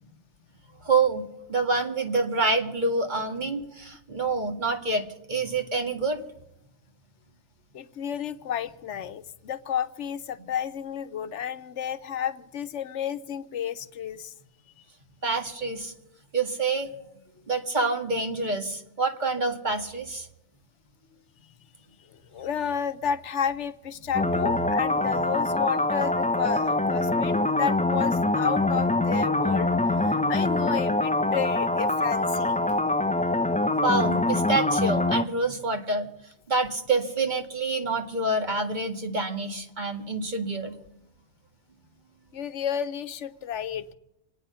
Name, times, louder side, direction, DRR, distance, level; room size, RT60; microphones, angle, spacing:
voice 1, 0.8-1.2 1.5-6.2 15.2-15.9 16.3-16.9 17.5-20.3 25.1-25.2 33.8-36.1 36.5-40.7, right 3 dB, 40° right, 4 dB, 2.0 m, -27 dB
voice 2, 7.7-14.3 22.1-29.7 30.0-32.6 42.3-43.9, left 8 dB, 80° left, 12 dB, 1.1 m, -31 dB
sound 1, 24.1-35.2, left 2 dB, 10° left, 0.4 m, -24 dB
27.5 x 9.4 x 5.6 m, 0.85 s
omnidirectional pair, 1.2 m